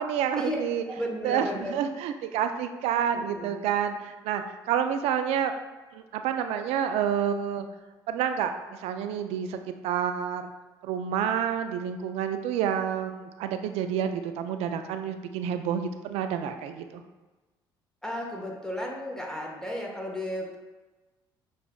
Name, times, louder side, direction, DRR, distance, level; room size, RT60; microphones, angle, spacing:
voice 1, 0.0-0.8 1.2-5.5 5.9-7.7 8.1-9.6 9.8-10.5 10.8-17.0, right 8 dB, 65° right, 7 dB, 0.4 m, -29 dB
voice 2, 0.9-1.7 3.1-3.6 18.0-20.6, equal, 5° left, -2 dB, 1.2 m, -34 dB
6.1 x 2.4 x 2.3 m, 1.2 s
hypercardioid pair, 55°, 11 cm